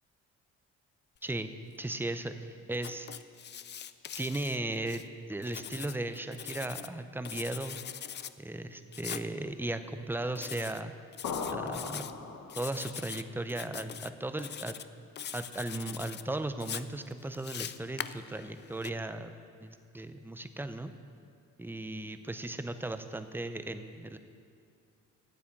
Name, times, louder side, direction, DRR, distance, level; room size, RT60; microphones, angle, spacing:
voice 1, 1.8-3.1 4.2-5.0 5.3-7.8 8.4-10.9 11.5-12.1 12.6-14.8 15.3-19.3 19.6-20.9 21.6-24.2, right 2 dB, 5° right, 9 dB, 0.6 m, -36 dB
Writing, 2.7-5.0 5.4-6.9 7.2-8.3 8.9-9.3 10.4-10.8 11.1-12.1 12.5-13.2 13.5-14.1 14.4-14.9 15.2-16.2 16.6-18.9, left 9 dB, 35° left, 0.4 m, -42 dB
sound 1, 11.2-13.0, left 5 dB, 65° left, 1.1 m, -38 dB
9.1 x 8.5 x 7.3 m, 2.4 s
cardioid pair, 90°, 30 cm